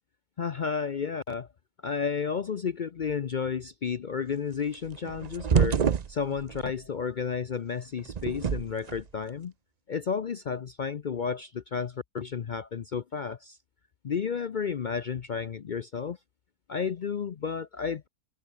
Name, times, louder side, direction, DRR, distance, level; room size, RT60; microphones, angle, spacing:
voice 1, 0.4-1.5 1.8-9.5 9.9-13.6 14.0-16.2 16.7-18.1, left 6 dB, 65° left, 0.4 m, -32 dB
sound 1, 4.7-6.7 8.0-9.0, right 7 dB, 55° right, 0.4 m, -27 dB
omnidirectional pair, 1.6 m